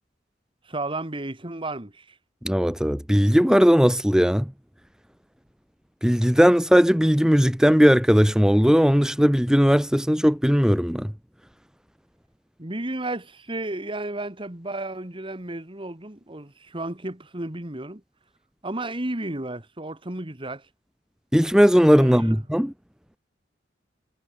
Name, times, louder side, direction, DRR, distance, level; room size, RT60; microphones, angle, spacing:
voice 1, 0.6-2.2 12.6-18.0 18.6-20.7 22.0-22.4, right 2 dB, 30° right, 2.0 m, -33 dB
voice 2, 2.4-4.5 6.0-11.1 21.3-22.7, equal, 5° right, 1.2 m, -18 dB
head